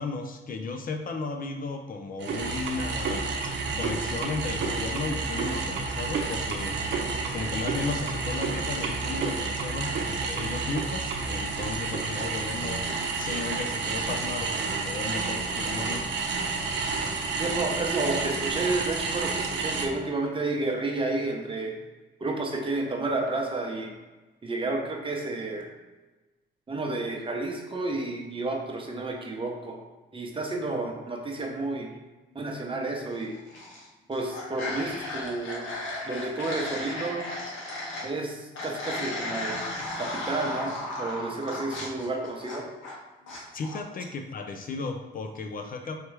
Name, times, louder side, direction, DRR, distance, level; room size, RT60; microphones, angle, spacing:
voice 1, 0.0-6.8 7.3-12.9 13.2-16.3 16.6-16.8 32.3-32.4 43.2-46.0, left 4 dB, 45° left, 5 dB, 0.5 m, -35 dB
sound 1, 2.2-19.9, right 4 dB, 65° right, 0.7 m, -30 dB
voice 2, 17.4-21.8 22.2-23.9 24.4-25.7 26.7-29.8 30.1-31.9 32.3-33.4 34.1-35.7 36.1-37.2 38.0-39.6 40.0-42.6, right 2 dB, 25° right, 1 dB, 0.9 m, -31 dB
sound 2, 33.3-33.9 34.1-38.1 38.5-42.9 43.3-43.8, left 2 dB, 75° left, 1.4 m, -35 dB
4.8 x 2.9 x 3.3 m, 1.2 s
cardioid pair, 90°, 20 cm